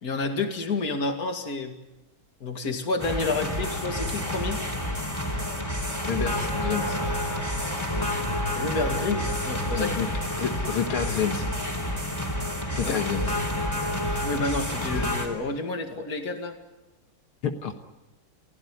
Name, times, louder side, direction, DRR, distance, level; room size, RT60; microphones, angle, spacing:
voice 1, 0.0-1.8 2.4-4.6 8.5-10.0 10.4-10.5 12.8-13.0 14.2-16.6, left 3 dB, 45° left, 5 dB, 2.7 m, -29 dB
sound 1, 3.0-15.3, left 1 dB, 10° left, 3.8 m, -29 dB
voice 2, 6.1-7.0 9.8-11.5 12.7-13.3 17.4-17.7, left 7 dB, 80° left, 6 dB, 2.3 m, -29 dB
29.5 x 16.0 x 9.7 m, 1.0 s
omnidirectional pair, 2.4 m